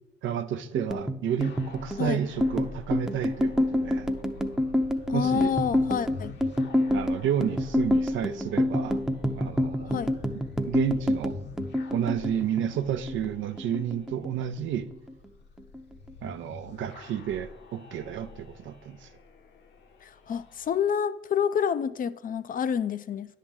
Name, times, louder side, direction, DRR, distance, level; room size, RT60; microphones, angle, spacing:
voice 1, 0.2-4.1 5.1-5.5 6.9-9.0 9.4-10.0 10.7-11.4 11.9-14.9 16.2-19.1, right 9 dB, 80° right, 0.6 m, -31 dB
sound 1, 0.7-13.3 13.6-14.6 14.9-15.3 15.6-16.3, left 1 dB, 5° right, 0.6 m, -28 dB
sound 2, 1.4-20.8, left 4 dB, 60° left, 1.0 m, -47 dB
voice 2, 4.8-6.3 9.9-10.1 20.0-23.4, left 7 dB, 45° left, 0.4 m, -28 dB
10.0 x 3.7 x 7.3 m
cardioid pair, 90°, 20 cm